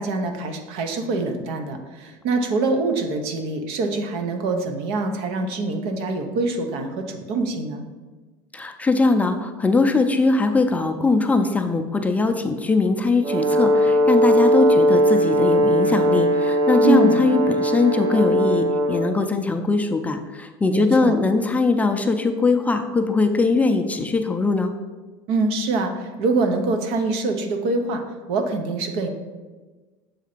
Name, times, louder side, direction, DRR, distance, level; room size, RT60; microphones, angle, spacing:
voice 1, 0.0-7.8 16.8-17.2 20.7-21.2 25.3-28.0 28.3-29.1, right 3 dB, 70° right, 5 dB, 0.9 m, -24 dB
voice 2, 8.5-24.7, left 3 dB, 15° left, 5 dB, 0.4 m, -21 dB
Brass instrument, 13.2-19.2, equal, 35° right, 0.6 m, -19 dB
7.4 x 2.8 x 5.0 m, 1.3 s
supercardioid pair, 105°, 11 cm